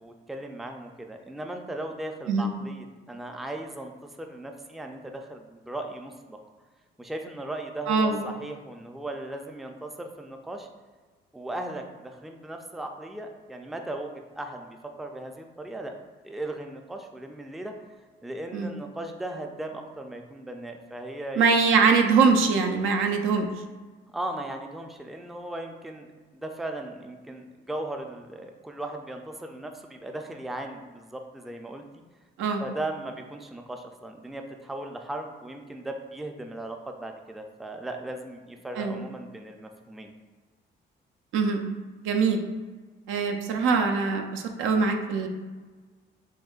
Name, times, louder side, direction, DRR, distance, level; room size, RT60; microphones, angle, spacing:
voice 1, 0.0-6.4 7.0-10.7 11.3-15.9 16.2-17.7 18.2-21.5 24.1-26.1 26.3-32.0 32.6-40.1, right 1 dB, ahead, 4 dB, 0.3 m, -37 dB
voice 2, 7.9-8.2 18.5-18.7 21.3-23.5 32.4-32.6 38.8-39.0 41.3-41.6 42.0-42.4 43.1-45.3, right 5 dB, 85° right, 4 dB, 0.5 m, -23 dB
6.2 x 2.1 x 2.4 m, 1.4 s
cardioid pair, 90°, 20 cm